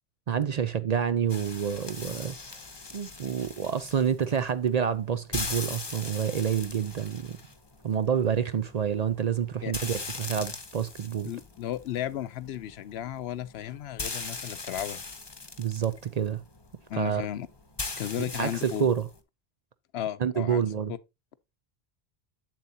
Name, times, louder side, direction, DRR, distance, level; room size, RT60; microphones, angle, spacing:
voice 1, 0.3-2.4 2.9-7.4 7.8-11.3 15.6-16.4 16.9-17.3 18.2-19.1 20.2-20.9, right 8 dB, 55° right, 0.5 m, -28 dB
sound 1, 1.3-19.2, left 3 dB, 25° left, 0.8 m, -41 dB
voice 2, 11.3-15.0 16.9-17.5 18.0-18.9 19.9-20.6 20.9-21.0, left 11 dB, 80° left, 0.9 m, -34 dB
7.8 x 7.5 x 2.7 m
omnidirectional pair, 1.0 m